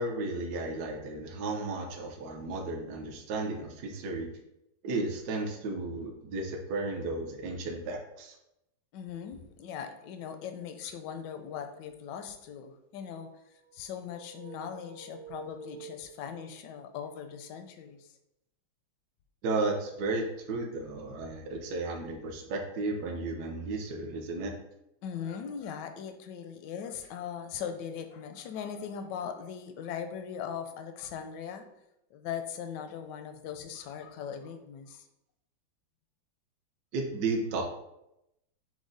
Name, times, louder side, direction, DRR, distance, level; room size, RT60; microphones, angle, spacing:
voice 1, 0.0-4.3 4.8-8.3 19.4-24.5 36.9-37.6, right 2 dB, 65° right, 1 dB, 0.9 m, -34 dB
voice 2, 8.9-13.3 13.7-18.1 25.0-31.6 32.1-35.1, left 7 dB, 75° left, 7 dB, 1.0 m, -40 dB
sound 1, 13.0-16.6, right 4 dB, 90° right, 1.5 m, -49 dB
6.1 x 2.1 x 3.9 m, 0.85 s
omnidirectional pair, 2.2 m